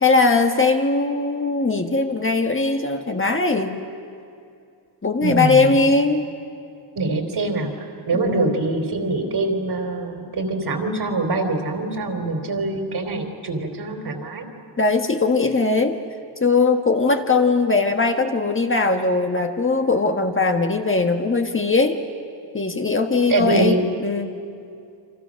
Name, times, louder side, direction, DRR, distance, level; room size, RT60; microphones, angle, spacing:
voice 1, 0.0-3.8 5.0-6.2 8.1-8.6 14.8-16.0 16.4-22.0 22.5-24.3, left 3 dB, 25° left, 4 dB, 1.6 m, -20 dB
voice 2, 5.2-5.8 7.0-14.4 23.3-23.8, right 2 dB, 55° right, 5 dB, 3.7 m, -24 dB
29.0 x 25.0 x 6.5 m, 2.5 s
cardioid pair, 90°, 46 cm